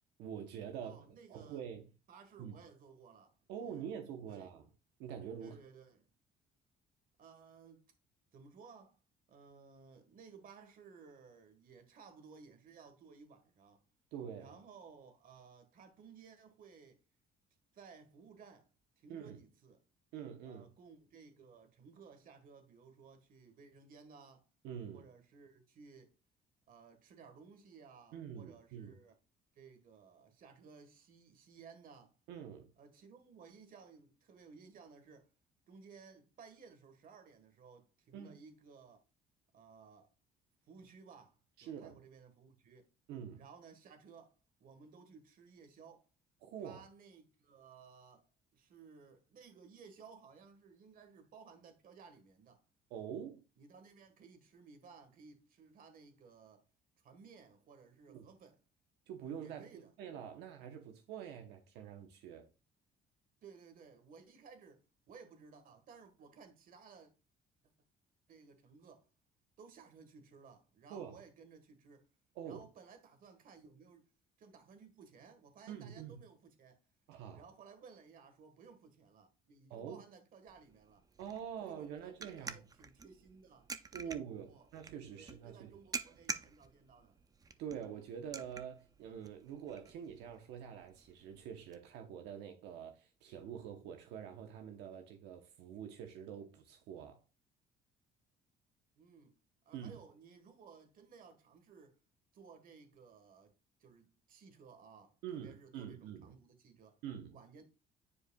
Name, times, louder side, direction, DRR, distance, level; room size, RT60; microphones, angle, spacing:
voice 1, 0.2-1.0 1.3-1.8 2.4-2.5 3.5-4.7 5.0-5.6 14.1-14.6 19.1-19.4 20.1-20.7 24.6-25.1 28.1-29.0 32.3-32.7 38.1-38.4 41.6-42.0 43.1-43.4 46.4-46.8 52.9-53.4 58.1-58.3 59.1-62.5 70.9-71.2 72.3-72.6 75.7-76.2 77.1-77.4 79.7-80.0 81.2-82.6 83.9-85.8 87.6-97.2 99.7-100.0 105.2-106.3 107.0-107.4, right 8 dB, 90° right, 0.9 m, -46 dB
voice 2, 0.8-1.6 2.1-3.4 3.6-3.9 4.3-4.5 5.4-6.1 7.2-7.9 8.3-9.0 9.3-13.8 14.3-17.0 17.7-18.7 19.0-19.8 20.4-24.5 24.9-26.1 26.7-29.1 29.5-32.1 32.8-35.3 35.7-39.0 39.5-40.1 40.7-42.9 43.3-44.3 44.6-46.1 46.6-48.3 48.5-52.6 53.6-56.6 57.0-58.6 59.3-59.9 63.4-67.1 68.3-69.1 69.6-72.1 72.4-74.1 74.4-76.8 77.3-81.1 81.6-83.7 84.0-84.7 85.1-87.2 99.0-99.4 99.6-102.0 102.3-103.5 103.8-107.0 107.3-107.6, right 5 dB, 55° right, 1.5 m, -58 dB
sound 1, 80.5-91.8, right 4 dB, 20° right, 0.5 m, -49 dB
9.8 x 4.7 x 2.3 m
cardioid pair, 110°, 17 cm